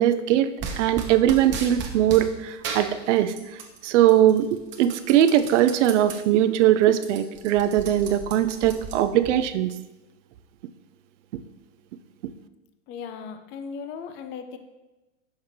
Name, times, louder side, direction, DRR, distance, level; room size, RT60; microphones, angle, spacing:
voice 1, 0.0-4.5 4.8-9.7, right 11 dB, 70° right, 11 dB, 0.5 m, -21 dB
sound 1, 0.6-2.3 2.6-3.8 4.1-6.2 6.6-6.7 6.9-9.3, right 5 dB, 30° right, 0.9 m, -35 dB
voice 2, 12.9-14.6, left 6 dB, 30° left, 8 dB, 0.5 m, -37 dB
5.8 x 5.6 x 3.2 m, 1.1 s
hypercardioid pair, 120°, 38 cm